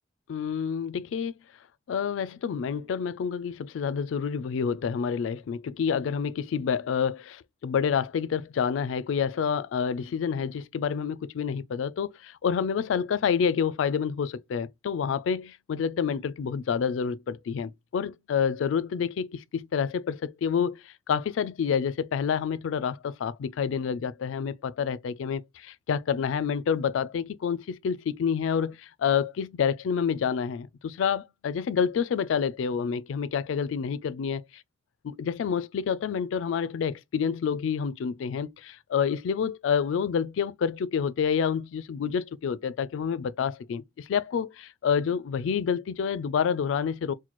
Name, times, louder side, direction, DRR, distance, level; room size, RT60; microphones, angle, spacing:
voice 1, 0.3-1.3 1.9-34.4 35.1-47.1, left 7 dB, 75° left, 0.3 m, -28 dB
3.0 x 2.2 x 4.1 m
head